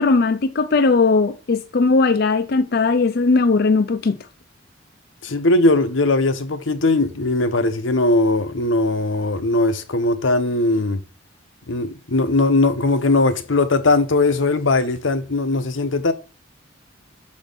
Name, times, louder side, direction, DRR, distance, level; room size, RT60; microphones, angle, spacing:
voice 1, 0.0-4.2, left 4 dB, 55° left, 0.5 m, -18 dB
voice 2, 5.2-11.0 11.7-16.1, left 2 dB, 85° left, 0.9 m, -19 dB
7.0 x 4.3 x 5.4 m
head